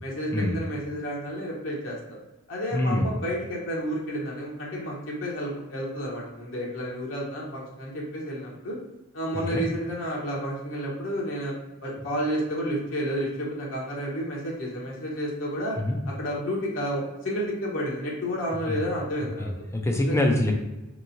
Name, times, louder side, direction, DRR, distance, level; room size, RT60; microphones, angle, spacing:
voice 1, 0.0-2.0 2.5-8.8 9.1-11.5 11.8-15.8 16.1-19.5 20.0-20.2, equal, 60° left, -4 dB, 1.0 m, -31 dB
voice 2, 2.7-3.1 9.3-9.6 15.8-16.0 18.7-18.8 19.4-20.5, left 1 dB, 10° left, 2 dB, 0.5 m, -25 dB
4.6 x 3.0 x 2.7 m, 1.0 s
head